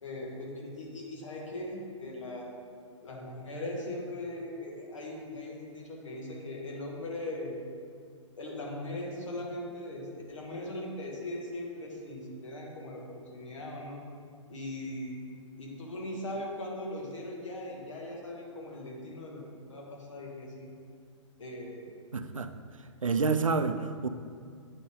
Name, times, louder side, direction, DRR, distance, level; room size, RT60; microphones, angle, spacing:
voice 1, 0.0-2.5 3.0-7.6 8.4-14.0 14.5-15.2 15.6-19.4 19.7-20.7 21.4-21.9, left 1 dB, 70° left, -2 dB, 1.7 m, -39 dB
voice 2, 22.1-22.5 23.0-24.1, right 4 dB, 90° right, 9 dB, 0.4 m, -28 dB
8.9 x 4.2 x 3.6 m, 2.2 s
figure-of-eight pair, 120°, 16 cm